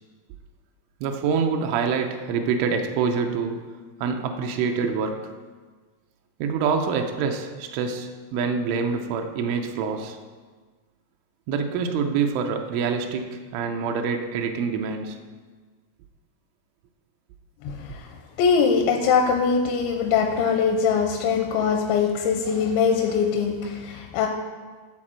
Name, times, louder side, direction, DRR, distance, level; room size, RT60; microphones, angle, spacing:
voice 1, 1.0-3.6 4.0-5.3 6.4-10.2 11.5-15.2, right 5 dB, 90° right, 4 dB, 3.2 m, -26 dB
voice 2, 17.6-18.0 18.4-24.3, left 6 dB, 85° left, 3 dB, 3.0 m, -22 dB
12.5 x 4.1 x 7.4 m, 1.4 s
omnidirectional pair, 5.3 m